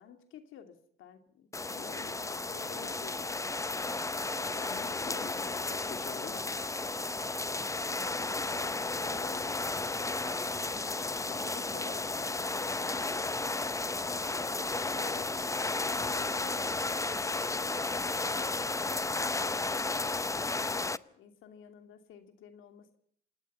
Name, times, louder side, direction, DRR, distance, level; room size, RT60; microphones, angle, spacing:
voice 1, 0.0-3.5 4.3-5.8 8.5-10.0 11.4-12.9 14.9-20.1 20.6-23.0, left 8 dB, 85° left, 7 dB, 2.8 m, -52 dB
sound 1, 1.5-21.0, left 3 dB, 15° left, 0.8 m, -33 dB
Fireworks, 1.6-18.9, right 9 dB, 75° right, 3.5 m, -56 dB
voice 2, 1.8-2.2 4.6-6.6 11.0-11.5, left 7 dB, 55° left, 8 dB, 2.3 m, -48 dB
27.0 x 19.0 x 5.7 m, 0.64 s
cardioid pair, 90°, 20 cm